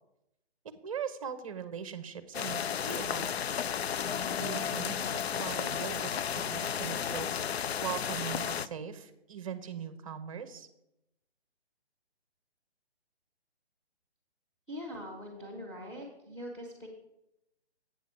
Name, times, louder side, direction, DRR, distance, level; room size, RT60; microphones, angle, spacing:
voice 1, 0.6-3.4 4.4-7.3 7.8-10.7, right 8 dB, 30° right, 12 dB, 0.8 m, -40 dB
sound 1, 2.3-8.7, left 8 dB, 70° left, 0.5 m, -33 dB
voice 2, 14.7-16.9, equal, 10° left, -2 dB, 1.4 m, -42 dB
8.6 x 6.0 x 6.0 m, 0.88 s
hypercardioid pair, 160°, 33 cm